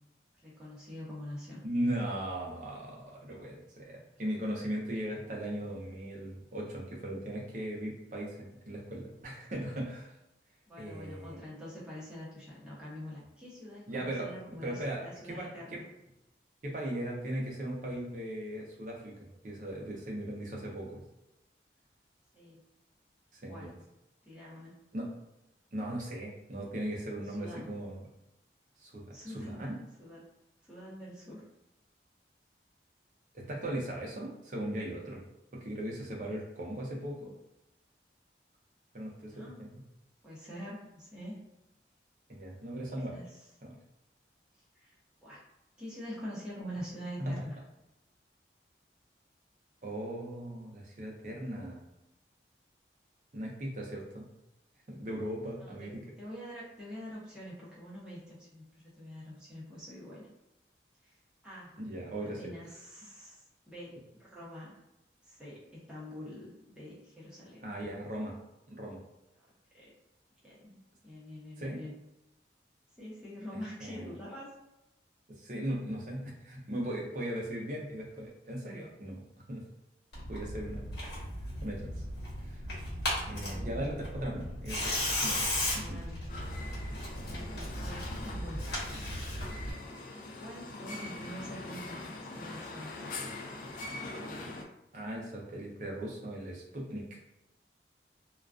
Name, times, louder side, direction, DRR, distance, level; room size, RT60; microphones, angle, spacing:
voice 1, 0.4-1.6 10.7-15.9 22.3-22.6 23.5-23.7 24.2-24.7 27.3-27.7 29.1-29.6 30.0-30.2 30.6-31.4 39.1-39.6 40.2-41.4 43.1-43.5 44.8-44.9 45.2-45.4 45.8-47.6 55.6-60.3 61.0-61.2 61.4-61.8 62.2-64.8 65.3-67.7 69.7-69.9 70.4-71.9 73.0-74.5 83.1-83.9 84.7-84.9 85.6-86.2 87.1-89.1 90.4-92.9, equal, 5° right, -8 dB, 0.7 m, -45 dB
voice 2, 1.6-10.1 10.8-11.4 13.9-15.0 15.3-15.8 16.6-19.1 19.4-21.0 23.3-23.7 24.9-25.1 25.7-28.0 28.8-29.8 33.3-35.2 35.6-37.3 38.9-39.7 42.3-43.2 43.6-43.8 47.2-47.3 49.8-51.8 53.3-54.3 54.9-56.0 61.8-62.5 67.6-68.4 68.7-69.0 71.6-71.8 73.8-74.1 75.4-79.2 79.5-79.6 80.3-80.9 81.6-82.0 82.5-82.6 83.3-85.5 85.7-86.0 94.9-97.0, right 1 dB, 45° right, -2 dB, 0.6 m, -38 dB
Tearing, 80.1-89.7, left 1 dB, 70° left, 1.1 m, -36 dB
sound 1, 86.3-94.6, left 2 dB, 50° left, 0.3 m, -43 dB
2.3 x 2.2 x 2.4 m, 0.91 s
head